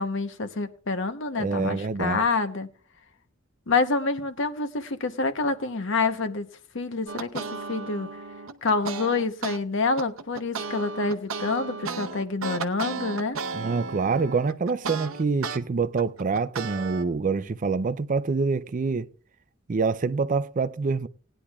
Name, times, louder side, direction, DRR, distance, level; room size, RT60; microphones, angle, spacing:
voice 1, 0.0-2.7 3.7-6.5 6.7-8.1 8.6-13.4, left 3 dB, 65° left, 0.9 m, -27 dB
voice 2, 1.4-2.2 13.5-19.1 19.7-21.1, right 4 dB, 40° right, 0.4 m, -26 dB
sound 1, 7.1-9.6 10.0-15.6 16.0-17.0, right 4 dB, 80° right, 0.8 m, -34 dB
19.0 x 10.0 x 2.3 m
head